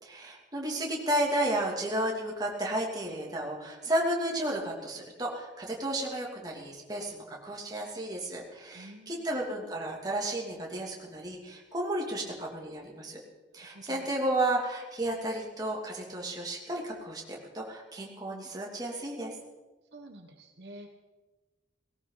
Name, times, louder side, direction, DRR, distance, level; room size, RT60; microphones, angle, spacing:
voice 1, 0.0-13.2 13.5-19.3, right 1 dB, 20° right, -2 dB, 2.7 m, -33 dB
voice 2, 8.7-9.2 13.6-14.1 19.9-20.9, right 1 dB, 65° right, 4 dB, 1.4 m, -49 dB
18.0 x 18.0 x 4.1 m, 1.2 s
head